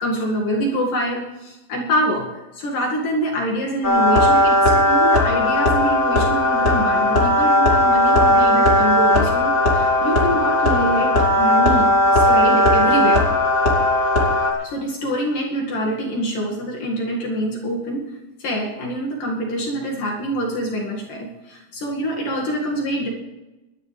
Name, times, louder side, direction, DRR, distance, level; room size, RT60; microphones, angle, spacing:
voice 1, 0.0-13.3 14.6-18.1 18.4-23.1, equal, 65° left, -2 dB, 3.5 m, -25 dB
sound 1, 3.8-14.5, left 1 dB, 25° left, 2.7 m, -17 dB
19.5 x 13.0 x 3.3 m, 1.1 s
omnidirectional pair, 4.2 m